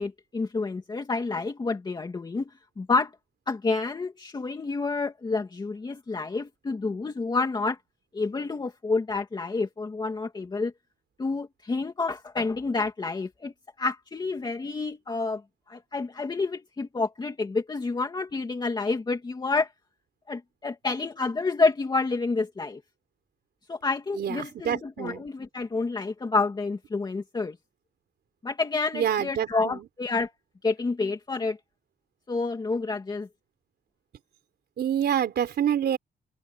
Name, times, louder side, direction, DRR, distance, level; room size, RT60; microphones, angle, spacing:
voice 1, 0.0-2.5 2.8-3.1 3.5-7.8 8.1-10.7 11.2-13.5 13.8-15.4 15.7-19.7 20.3-22.8 23.7-27.5 28.4-30.3 30.6-31.6 32.3-33.3, left 3 dB, 25° left, 2.5 m, -29 dB
voice 2, 24.2-25.2 28.9-29.8 34.8-36.0, right 9 dB, 65° right, 4.0 m, -27 dB
wide cardioid pair, 180°, 18 cm